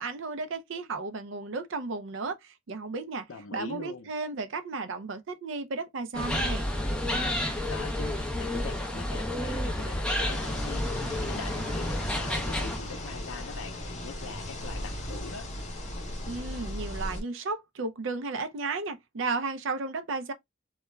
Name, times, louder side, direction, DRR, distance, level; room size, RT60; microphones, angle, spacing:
voice 1, 0.0-3.2 3.5-6.7 16.3-20.3, right 3 dB, 60° right, 0.5 m, -34 dB
voice 2, 3.3-4.1 7.4-15.5, left 4 dB, 75° left, 0.5 m, -43 dB
sound 1, 6.1-12.8, left 1 dB, 5° left, 0.4 m, -30 dB
sound 2, 10.3-17.2, left 1 dB, 35° left, 0.7 m, -37 dB
2.3 x 2.1 x 3.0 m
head